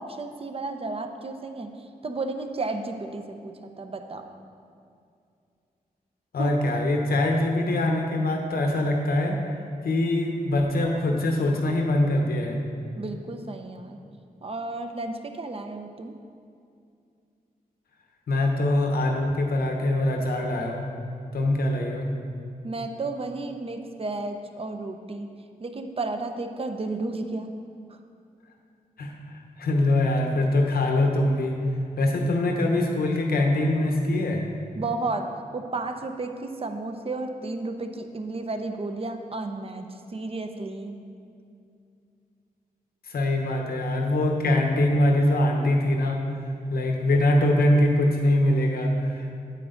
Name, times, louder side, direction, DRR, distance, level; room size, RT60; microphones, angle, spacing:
voice 1, 0.0-1.7 2.0-4.3 6.4-6.6 13.0-14.0 14.4-16.1 22.6-25.3 25.6-27.5 27.9-28.0 34.8-41.0, right 2 dB, 40° right, 6 dB, 0.7 m, -33 dB
voice 2, 6.3-9.5 9.8-12.6 18.3-20.9 21.3-22.1 29.0-31.6 32.0-34.4 43.0-46.3 46.7-49.3, left 1 dB, 90° left, 1 dB, 1.1 m, -23 dB
9.1 x 8.4 x 3.9 m, 2.4 s
wide cardioid pair, 95°, 15 cm